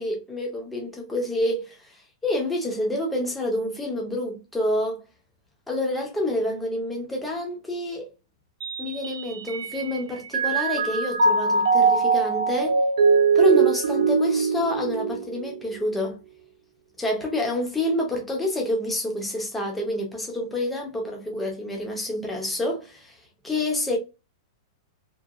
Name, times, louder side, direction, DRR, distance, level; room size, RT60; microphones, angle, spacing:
voice 1, 0.0-2.0 2.2-5.0 5.7-8.1 8.8-12.8 13.3-16.2 17.0-24.0, left 1 dB, 5° left, 0.5 m, -28 dB
Mallet percussion, 8.6-10.0 10.3-15.8, right 5 dB, 75° right, 0.5 m, -22 dB
2.8 x 2.2 x 2.4 m
supercardioid pair, 180°, 3 cm